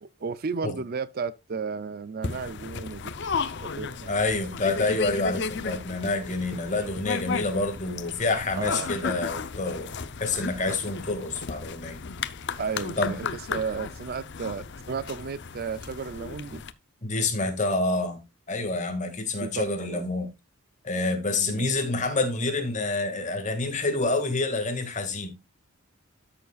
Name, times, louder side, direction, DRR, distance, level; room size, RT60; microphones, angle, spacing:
voice 1, 0.0-3.1 3.6-4.1 6.8-7.0 8.6-9.2 12.6-16.6 19.4-20.1 21.4-21.7, right 5 dB, 45° right, 0.4 m, -34 dB
sound 1, 2.2-16.7, left 5 dB, 50° left, 0.6 m, -34 dB
voice 2, 4.1-9.9 10.2-12.0 13.0-13.1 17.0-18.2 18.5-20.3 20.8-25.3, left 2 dB, 35° left, 2.0 m, -27 dB
13.0 x 7.1 x 2.4 m
head